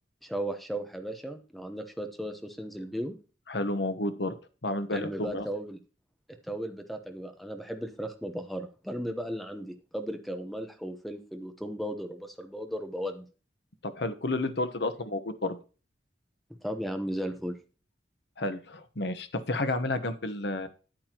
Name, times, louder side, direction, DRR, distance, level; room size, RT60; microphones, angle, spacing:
voice 1, 0.2-3.2 4.9-5.8 6.5-13.2 16.6-17.5, equal, ahead, 6 dB, 0.9 m, -36 dB
voice 2, 3.5-4.3 4.6-5.5 13.8-15.6 18.4-20.7, left 2 dB, 65° left, 10 dB, 1.1 m, -31 dB
9.6 x 8.9 x 3.0 m, 0.35 s
head